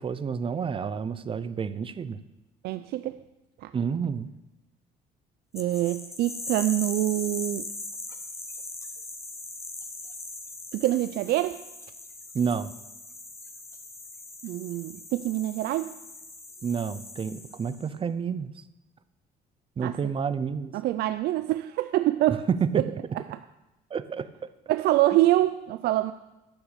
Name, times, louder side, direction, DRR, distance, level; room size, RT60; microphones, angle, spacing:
voice 1, 0.0-2.2 3.7-4.3 12.3-12.7 16.6-18.5 19.8-20.7 22.3-22.8 23.9-24.5, right 6 dB, 30° right, 14 dB, 0.7 m, -29 dB
voice 2, 2.6-3.2 3.6-3.7 5.5-7.7 10.7-11.6 14.4-16.0 19.8-20.0 20.7-22.5 23.3-23.4 24.7-26.1, right 15 dB, 75° right, 11 dB, 0.5 m, -25 dB
sound 1, 5.6-17.9, left 2 dB, 15° left, 1.2 m, -40 dB
12.0 x 6.1 x 8.2 m, 0.98 s
cardioid pair, 110°, 17 cm